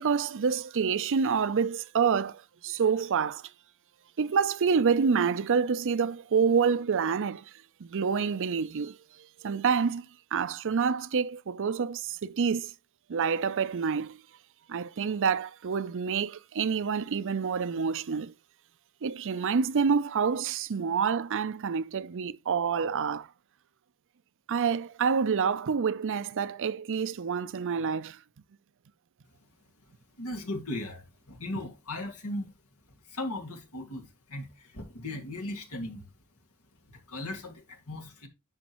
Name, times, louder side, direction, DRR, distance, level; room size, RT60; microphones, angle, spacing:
voice 1, 0.0-3.5 4.2-7.4 7.8-9.0 9.4-10.1 10.3-12.7 13.1-14.2 14.7-18.3 19.0-23.3 24.5-28.2, right 6 dB, 60° right, 0.5 m, -27 dB
voice 2, 30.2-32.5 33.0-36.1 36.9-38.3, left 1 dB, 80° left, 2.0 m, -37 dB
10.5 x 5.7 x 3.0 m
head